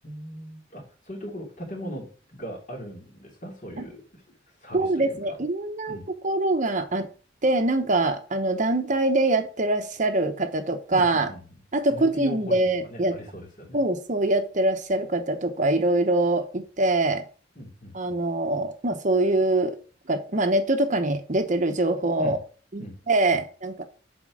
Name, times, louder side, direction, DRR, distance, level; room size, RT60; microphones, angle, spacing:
voice 1, 0.0-4.2 4.6-5.4 5.9-6.1 10.9-11.4 11.9-13.8 17.6-18.2 22.2-22.4 22.8-23.0 23.3-23.4, equal, 45° left, 1 dB, 3.0 m, -39 dB
voice 2, 4.7-6.0 6.2-7.1 7.4-11.3 11.7-13.2 13.7-17.2 17.9-19.8 20.1-22.4 22.7-23.8, right 2 dB, 40° right, 8 dB, 1.0 m, -24 dB
7.5 x 4.6 x 6.2 m, 0.37 s
head